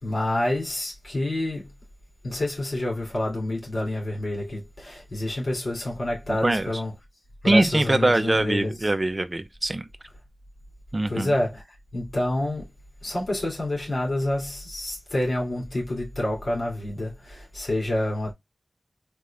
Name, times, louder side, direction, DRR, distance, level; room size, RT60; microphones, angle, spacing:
voice 1, 0.0-1.7 2.2-6.9 7.4-8.8 11.1-11.7 11.9-12.7 13.0-18.3, left 1 dB, 70° left, 3.0 m, -28 dB
voice 2, 7.4-9.9 10.9-11.3, right 2 dB, 35° right, 0.7 m, -22 dB
4.3 x 2.8 x 3.6 m
wide cardioid pair, 60°, 0 cm